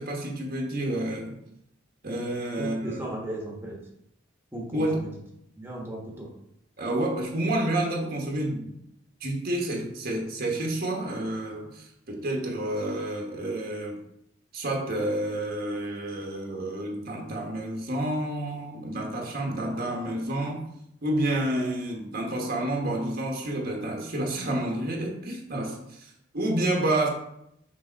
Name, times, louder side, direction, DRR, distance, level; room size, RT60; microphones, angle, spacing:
voice 1, 0.0-1.4 2.0-3.0 4.7-5.1 6.8-8.7 9.2-14.0 14.5-20.7 21.0-27.1, right 1 dB, 50° right, 0 dB, 1.2 m, -29 dB
voice 2, 2.6-3.8 4.5-5.1 5.6-6.3, right 1 dB, 10° right, -3 dB, 1.2 m, -36 dB
6.3 x 3.4 x 4.5 m, 0.77 s
head